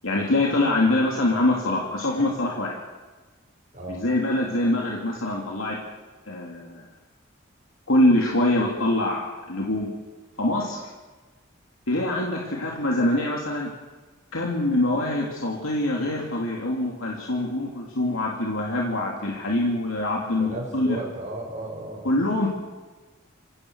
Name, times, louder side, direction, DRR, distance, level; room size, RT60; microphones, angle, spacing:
voice 1, 0.0-2.8 3.9-5.8 6.3-6.9 7.9-9.9 10.4-10.8 11.9-13.7 14.3-21.0 22.0-22.5, left 1 dB, 90° left, -2 dB, 3.2 m, -24 dB
voice 2, 3.7-4.0 20.4-22.2, right 1 dB, 35° right, -1 dB, 5.7 m, -34 dB
25.5 x 17.5 x 6.5 m, 1.3 s
head